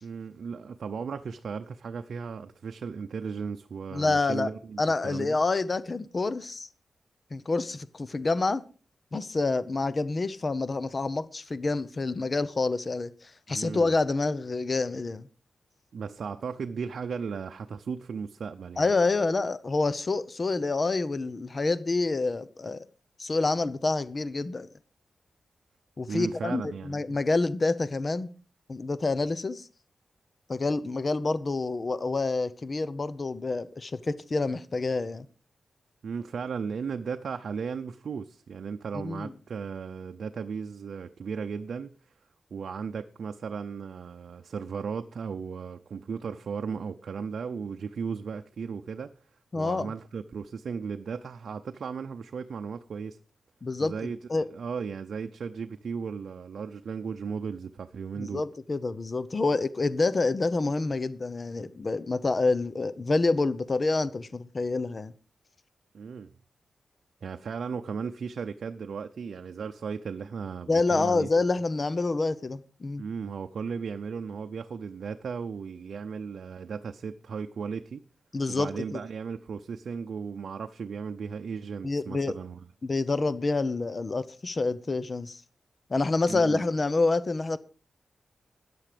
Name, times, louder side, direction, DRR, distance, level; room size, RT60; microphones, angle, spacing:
voice 1, 0.0-5.4 13.5-13.9 15.9-18.9 26.1-27.2 36.0-41.9 42.5-49.1 49.5-53.2 53.8-58.4 65.9-66.3 67.2-71.3 73.0-78.0 78.5-82.6 86.3-86.6, right 6 dB, 60° right, 0.7 m, -36 dB
voice 2, 3.9-4.5 4.8-6.7 7.3-8.6 9.1-15.3 18.8-22.8 23.2-24.7 26.0-28.3 28.7-29.7 30.5-35.3 38.9-39.3 49.5-49.9 53.6-53.9 54.3-54.5 58.2-65.1 70.7-73.0 78.3-79.0 81.8-82.3 82.8-85.4 85.9-87.6, left 3 dB, 30° left, 0.7 m, -27 dB
13.5 x 9.5 x 5.1 m
wide cardioid pair, 180°, 0 cm